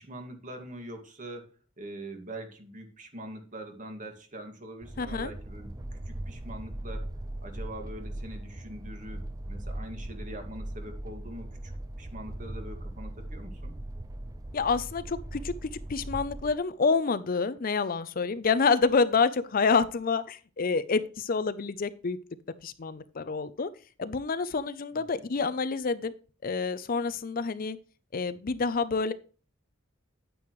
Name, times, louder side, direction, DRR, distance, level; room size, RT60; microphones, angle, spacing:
voice 1, 0.0-1.5 1.8-5.7 6.1-7.1 7.4-11.7 12.0-13.8 24.9-25.3, right 1 dB, 40° right, 5 dB, 2.0 m, -43 dB
sound 1, 4.8-16.6, right 1 dB, 20° right, 0.6 m, -39 dB
voice 2, 5.0-5.3 14.5-22.2 22.6-23.7 24.0-26.1 26.4-27.8 28.1-29.1, left 4 dB, 45° left, 15 dB, 0.5 m, -28 dB
9.4 x 9.3 x 3.1 m, 0.37 s
head